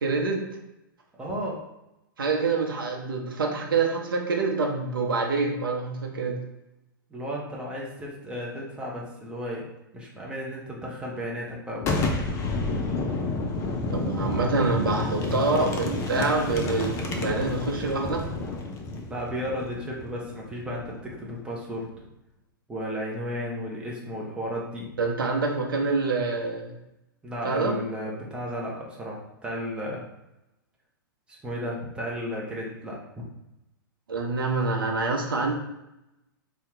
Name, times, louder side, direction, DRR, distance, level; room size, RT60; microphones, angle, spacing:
voice 1, 0.0-0.4 2.2-6.4 13.9-18.2 25.0-26.8 27.4-27.8 34.1-35.5, right 3 dB, 70° right, 1 dB, 0.7 m, -26 dB
voice 2, 1.2-1.6 7.1-9.6 9.9-12.0 19.1-21.9 22.7-24.9 27.2-30.0 31.4-33.0, equal, 10° right, -4 dB, 0.8 m, -34 dB
Boom, 11.8-21.4, left 3 dB, 25° left, 0.4 m, -30 dB
2.7 x 2.2 x 3.6 m, 0.90 s
figure-of-eight pair, 105°, 12 cm